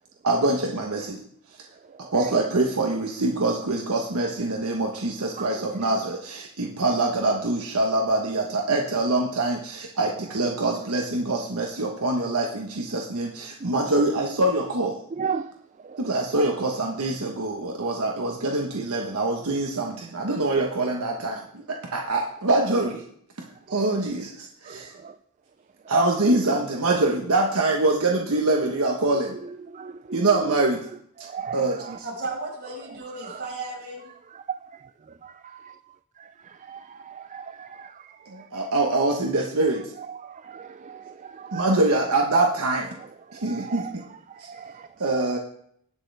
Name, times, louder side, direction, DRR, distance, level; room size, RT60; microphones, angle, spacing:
voice 1, 0.2-1.2 2.1-15.0 16.0-23.0 23.7-24.9 25.9-29.4 30.1-30.8 31.5-31.8 38.3-39.9 41.5-42.9 43.3-44.0 44.4-44.5 45.0-45.4, right 2 dB, 80° right, 1.2 m, -24 dB
voice 2, 15.2-15.5 16.4-16.5 24.7-25.1 29.7-30.2 31.3-31.9 33.3-33.4 35.5-35.7 36.7-37.9 40.4-41.7 43.5-43.9 44.5-44.9, right 6 dB, 35° right, 0.4 m, -35 dB
voice 3, 32.0-34.1, right 2 dB, 50° right, 5.5 m, -34 dB
19.5 x 6.6 x 3.4 m
head